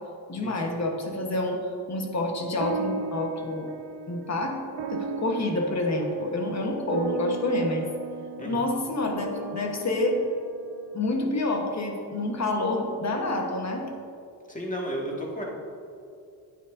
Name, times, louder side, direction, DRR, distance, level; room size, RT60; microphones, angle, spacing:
voice 1, 0.3-1.6 1.9-3.7 4.1-4.6 4.9-7.9 8.4-10.2 10.9-13.9, left 2 dB, 40° left, 2 dB, 1.2 m, -28 dB
sound 1, 2.6-11.3, right 5 dB, 80° right, 0.7 m, -37 dB
voice 2, 14.5-15.4, equal, 20° left, -2 dB, 1.8 m, -33 dB
9.6 x 8.8 x 2.6 m, 2.5 s
cardioid pair, 90°, 41 cm